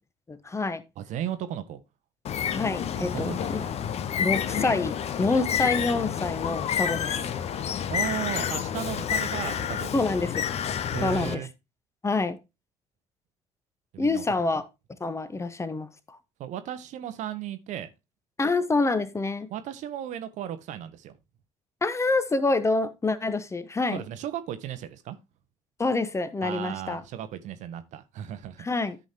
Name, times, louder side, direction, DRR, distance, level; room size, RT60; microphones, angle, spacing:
voice 1, 0.3-0.8 2.5-3.6 4.2-7.2 9.9-10.4 11.0-11.5 12.0-12.4 14.0-14.7 15.0-16.2 18.4-19.5 21.8-24.0 25.8-27.0 28.6-29.0, left 3 dB, 20° left, 1.0 m, -27 dB
voice 2, 1.0-1.8 3.0-3.8 7.9-9.9 10.9-11.5 13.9-14.5 16.4-17.9 19.5-21.2 23.9-25.2 26.4-28.7, right 11 dB, 55° right, 1.0 m, -35 dB
Bird, 2.2-11.3, left 8 dB, 45° left, 0.8 m, -29 dB
13.5 x 5.2 x 2.8 m
figure-of-eight pair, 50°, 15 cm